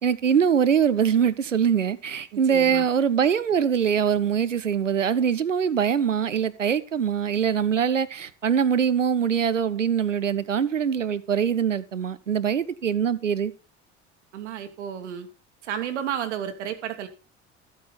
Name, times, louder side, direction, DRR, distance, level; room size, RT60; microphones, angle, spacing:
voice 1, 0.0-13.5, right 7 dB, 85° right, 0.6 m, -23 dB
voice 2, 2.3-2.9 14.3-15.3 15.6-17.1, right 9 dB, 70° right, 1.5 m, -32 dB
13.5 x 8.9 x 3.3 m
figure-of-eight pair, 65°, 37 cm